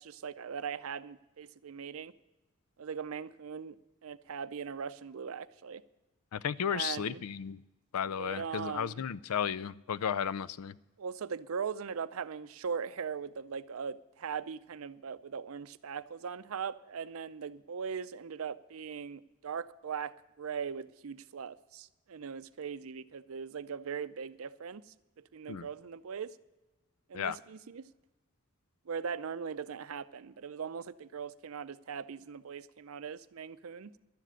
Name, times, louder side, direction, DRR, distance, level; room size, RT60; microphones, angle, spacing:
voice 1, 0.0-2.1 2.8-3.8 4.0-5.8 6.7-7.2 8.2-9.0 11.0-24.8 25.2-26.4 27.1-27.9 28.9-33.9, right 6 dB, 75° right, 15 dB, 0.5 m, -40 dB
voice 2, 6.3-7.6 7.9-10.8 25.5-25.7 27.1-27.4, left 8 dB, 90° left, 18 dB, 0.4 m, -34 dB
12.0 x 7.5 x 9.0 m, 1.1 s
head